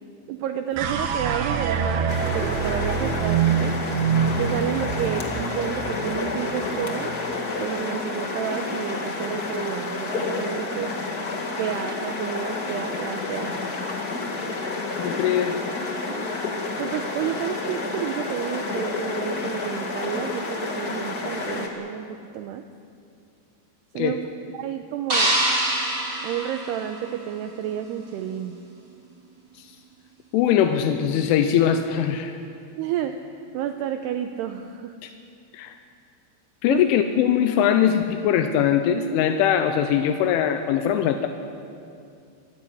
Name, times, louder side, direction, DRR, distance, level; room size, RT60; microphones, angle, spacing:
voice 1, 0.3-2.1 2.3-3.8 4.2-7.1 7.6-11.0 11.6-13.6 16.0-16.3 16.8-22.7 24.0-24.2 24.5-25.4 26.2-28.6 32.8-33.2 33.5-35.0 36.7-36.8, right 10 dB, 85° right, 8 dB, 2.4 m, -30 dB
sound 1, 0.8-7.1, right 7 dB, 65° right, 2.8 m, -26 dB
sound 2, 2.1-21.7, left 3 dB, 55° left, 1.0 m, -30 dB
voice 2, 15.0-15.6 23.9-24.2 29.6-29.7 30.3-32.4 35.0-35.1 35.5-35.8 36.6-41.3, left 9 dB, 85° left, 7 dB, 3.3 m, -21 dB
sound 3, 25.1-27.4, right 1 dB, 30° right, 4.1 m, -25 dB
25.0 x 15.0 x 9.9 m, 2.5 s
omnidirectional pair, 5.5 m